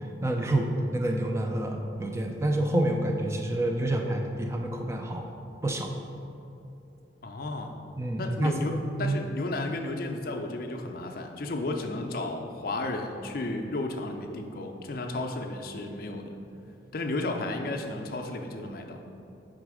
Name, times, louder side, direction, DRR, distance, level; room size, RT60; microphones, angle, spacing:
voice 1, 0.2-5.3 5.6-5.9 8.0-9.2, right 1 dB, 15° right, 2 dB, 0.4 m, -28 dB
voice 2, 7.2-7.8 8.2-16.3 16.9-19.0, left 2 dB, 50° left, 4 dB, 0.4 m, -33 dB
5.0 x 4.0 x 4.8 m, 2.8 s
head